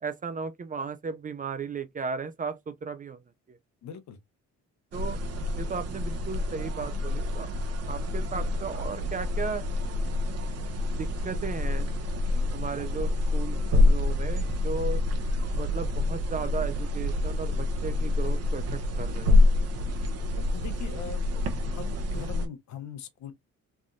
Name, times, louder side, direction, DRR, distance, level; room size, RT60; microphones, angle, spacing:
voice 1, 0.0-3.2 3.5-3.6 4.9-5.2 5.6-7.5 7.9-9.6 10.9-11.9 12.5-15.0 15.5-19.3, right 5 dB, 30° right, 0.4 m, -35 dB
voice 2, 3.8-4.2 20.3-21.2 21.7-23.3, left 7 dB, 65° left, 0.8 m, -41 dB
sound 1, 4.9-22.5, left 2 dB, 55° right, 0.8 m, -27 dB
3.3 x 2.5 x 2.2 m
cardioid pair, 90°, 30 cm